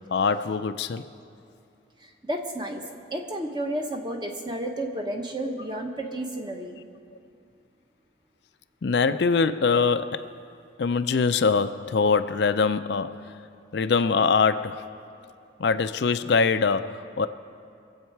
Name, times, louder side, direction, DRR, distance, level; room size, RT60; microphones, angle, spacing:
voice 1, 0.1-1.0 5.4-5.5 8.8-10.2 10.8-13.2 13.7-14.8 15.6-17.3, left 5 dB, 65° left, 11 dB, 0.4 m, -23 dB
voice 2, 2.0-6.8, right 1 dB, 25° right, 2 dB, 1.1 m, -32 dB
24.0 x 8.2 x 4.6 m, 2.6 s
head